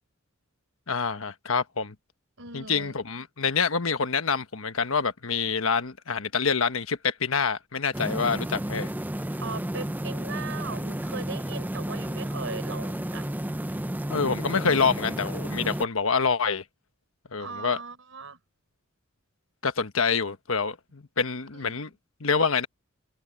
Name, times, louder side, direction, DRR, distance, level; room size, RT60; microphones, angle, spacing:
voice 1, 0.9-1.9 2.5-8.9 14.1-16.6 17.3-17.8 19.6-21.9 22.2-22.7, left 5 dB, 70° left, 1.3 m, -26 dB
voice 2, 2.4-3.0 9.4-13.3 17.4-18.4 21.5-21.9, right 4 dB, 65° right, 6.0 m, -39 dB
sound 1, 7.9-15.9, right 1 dB, 10° right, 0.6 m, -32 dB
head